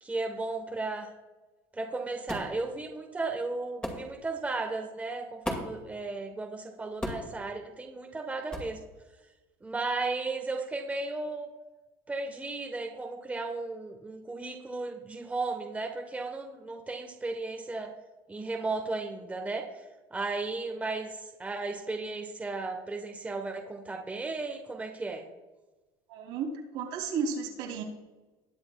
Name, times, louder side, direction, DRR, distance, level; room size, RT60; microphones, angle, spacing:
voice 1, 0.0-1.1 1.7-8.8 9.6-11.5 12.1-17.9 18.3-19.7 20.1-25.2, right 3 dB, 15° right, 2 dB, 1.1 m, -35 dB
sound 1, 2.3-2.5 3.8-4.1 5.4-5.8 7.0-7.3 8.5-8.7, left 1 dB, 10° left, 2.2 m, -35 dB
voice 2, 26.1-27.8, right 5 dB, 75° right, -1 dB, 2.9 m, -33 dB
20.0 x 7.9 x 2.3 m, 1.2 s
supercardioid pair, 120°, 11 cm